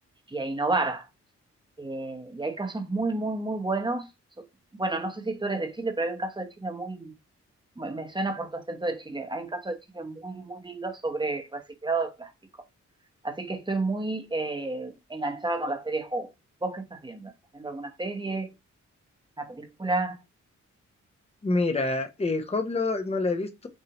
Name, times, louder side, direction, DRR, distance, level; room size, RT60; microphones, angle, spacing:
voice 1, 0.3-1.1 1.8-4.1 4.8-7.1 7.8-12.3 13.2-16.3 16.6-18.5 19.4-20.2, right 2 dB, 15° right, 1.0 m, -31 dB
voice 2, 21.4-23.7, left 3 dB, 20° left, 0.8 m, -27 dB
6.4 x 2.7 x 3.0 m
cardioid pair, 90°, 29 cm